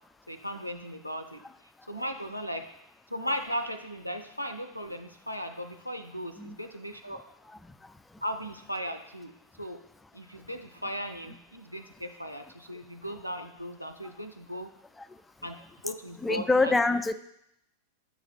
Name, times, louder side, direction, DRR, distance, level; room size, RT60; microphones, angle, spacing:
voice 1, 0.3-2.6 3.1-7.2 8.2-9.8 10.1-14.7 15.4-16.7, equal, 90° left, 8 dB, 0.4 m, -37 dB
voice 2, 7.5-8.2 15.0-15.2 16.2-17.1, left 3 dB, 10° left, 12 dB, 0.3 m, -27 dB
7.1 x 3.2 x 5.5 m, 0.79 s
figure-of-eight pair, 90°, 0 cm